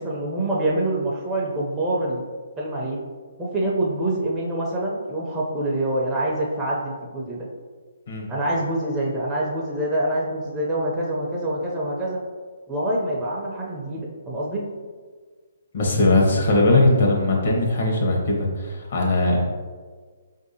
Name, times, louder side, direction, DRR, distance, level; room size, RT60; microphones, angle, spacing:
voice 1, 0.0-2.2 2.6-3.0 3.4-7.5 8.3-12.2 12.7-14.6, right 1 dB, 10° right, -5 dB, 0.5 m, -25 dB
voice 2, 15.7-19.4, left 2 dB, 60° left, -1 dB, 0.9 m, -20 dB
4.6 x 2.6 x 2.8 m, 1.5 s
figure-of-eight pair, 140°, 0 cm